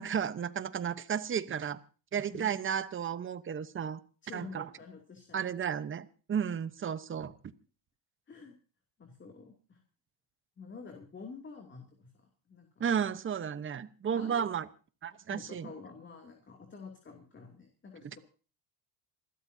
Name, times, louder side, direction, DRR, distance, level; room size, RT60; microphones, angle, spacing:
voice 1, 0.0-1.8 2.1-4.0 4.3-4.7 5.3-7.3 12.8-14.7 15.0-15.7, right 8 dB, 30° right, 14 dB, 1.0 m, -33 dB
voice 2, 4.2-5.6 8.3-8.5 9.0-9.8 10.6-12.8 14.1-14.5 15.3-18.2, left 4 dB, 25° left, 2 dB, 2.7 m, -49 dB
28.0 x 13.0 x 2.8 m, 0.37 s
cardioid pair, 115°, 41 cm